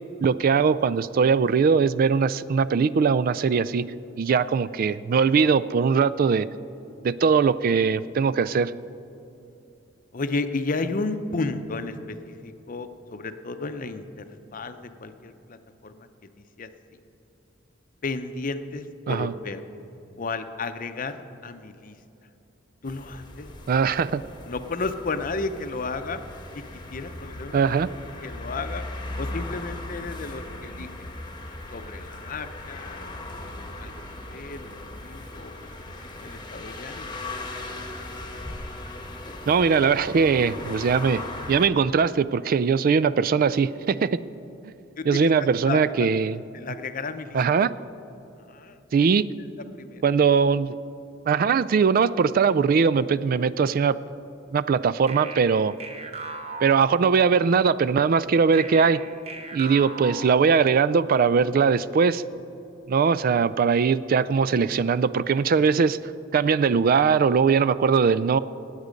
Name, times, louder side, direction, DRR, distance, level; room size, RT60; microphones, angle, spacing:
voice 1, 0.2-3.9 4.2-6.5 7.0-8.7 19.1-19.3 23.7-24.2 27.5-27.9 39.5-44.2 45.1-46.4 47.3-47.7 48.9-49.3 50.0-50.7 51.3-54.0 54.5-55.7 56.6-59.0 59.5-62.2 62.9-66.0 66.3-68.4, right 5 dB, 50° right, 17 dB, 0.3 m, -21 dB
voice 2, 10.1-16.1 16.4-16.7 18.0-19.6 20.2-21.9 22.8-23.5 24.5-26.2 26.5-26.6 26.9-27.6 28.2-28.8 29.2-30.9 31.7-34.0 34.3-35.9 36.2-37.2 45.0-45.3 45.7-46.1 46.5-47.4 48.5-48.8 49.8-50.0, left 3 dB, 45° left, 9 dB, 0.7 m, -33 dB
sound 1, 22.9-41.7, left 2 dB, 25° left, 1.2 m, -38 dB
sound 2, 55.1-57.6 58.5-61.0, right 3 dB, 35° right, 0.8 m, -38 dB
18.0 x 8.2 x 5.2 m, 2.7 s
head